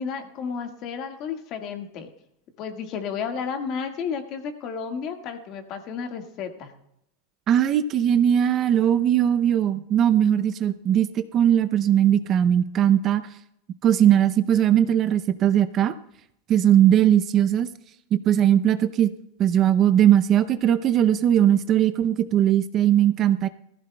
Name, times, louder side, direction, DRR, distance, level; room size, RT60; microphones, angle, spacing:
voice 1, 0.0-2.1 2.6-6.7, left 6 dB, 40° left, 5 dB, 1.6 m, -32 dB
voice 2, 7.5-13.2 13.8-15.9 16.5-17.7 18.1-19.1 19.4-23.5, right 10 dB, 30° right, 12 dB, 0.5 m, -19 dB
19.0 x 15.0 x 2.2 m, 0.77 s
supercardioid pair, 150°, 0 cm